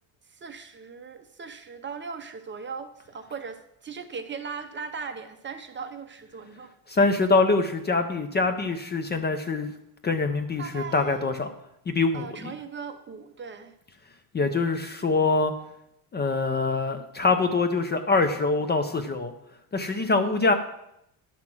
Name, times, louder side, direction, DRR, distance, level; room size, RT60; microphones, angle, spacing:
voice 1, 0.3-6.7 10.6-11.2 12.1-13.7 18.1-18.2 20.2-20.5, right 5 dB, 25° right, 7 dB, 0.6 m, -39 dB
voice 2, 6.9-9.7 10.0-11.5 11.9-12.5 14.3-15.5 16.1-19.3 19.7-20.5, left 3 dB, 20° left, 8 dB, 0.5 m, -24 dB
10.5 x 5.8 x 6.1 m, 0.79 s
cardioid pair, 150°, 48 cm